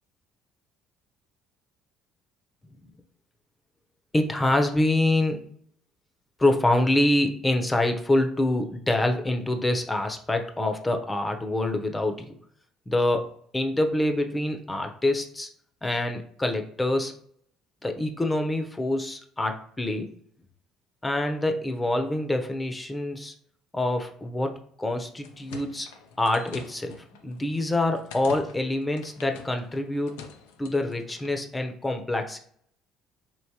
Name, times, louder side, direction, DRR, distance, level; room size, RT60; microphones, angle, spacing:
voice 1, 4.1-5.5 6.4-12.3 12.9-13.3 13.5-15.5 15.8-17.1 17.8-20.1 21.0-23.3 23.7-25.9 26.2-27.0 27.2-30.2 30.6-32.4, left 1 dB, 15° left, 5 dB, 0.7 m, -26 dB
sound 1, 25.0-31.4, left 5 dB, 85° left, 0.5 m, -46 dB
4.7 x 3.0 x 2.9 m, 0.63 s
supercardioid pair, 70°, 0 cm